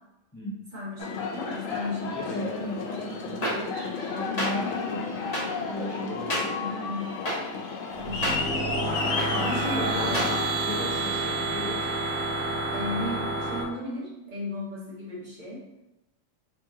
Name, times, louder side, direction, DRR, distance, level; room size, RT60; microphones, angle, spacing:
voice 1, 0.7-2.7 6.6-7.1 7.9-8.3 9.4-10.2 12.7-15.6, left 1 dB, 40° right, -6 dB, 1.1 m, -35 dB
Aircraft, 1.0-10.4, left 4 dB, 80° left, 1.0 m, -32 dB
voice 2, 2.1-6.6 7.9-8.2 9.0-11.9, left 1 dB, 15° left, -6 dB, 0.5 m, -37 dB
sound 1, 3.4-3.5 4.4-4.5 5.3-5.4 6.3-6.4 7.2-7.4 8.2-8.3 9.2-9.3 10.1-10.3, equal, 35° left, 0.9 m, -27 dB
sound 2, 7.9-13.6, right 2 dB, 85° right, 1.2 m, -29 dB
3.2 x 2.9 x 3.6 m, 0.97 s
omnidirectional pair, 1.3 m